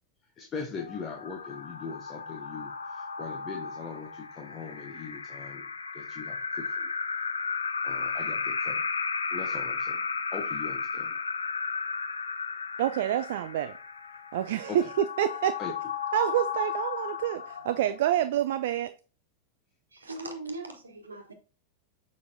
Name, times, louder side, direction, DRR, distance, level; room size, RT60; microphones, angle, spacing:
voice 1, 0.2-6.9 7.8-8.8 9.3-10.0 10.3-11.2 14.7-14.9 15.6-15.7, left 5 dB, 25° left, 1.0 m, -41 dB
sound 1, 0.8-18.2, left 5 dB, 75° left, 0.5 m, -34 dB
voice 2, 12.8-13.8 14.3-15.6 16.1-18.9, right 11 dB, 55° right, 0.3 m, -27 dB
voice 3, 19.9-21.3, right 2 dB, 75° right, 1.2 m, -39 dB
6.7 x 5.2 x 2.7 m
figure-of-eight pair, 90°, 0 cm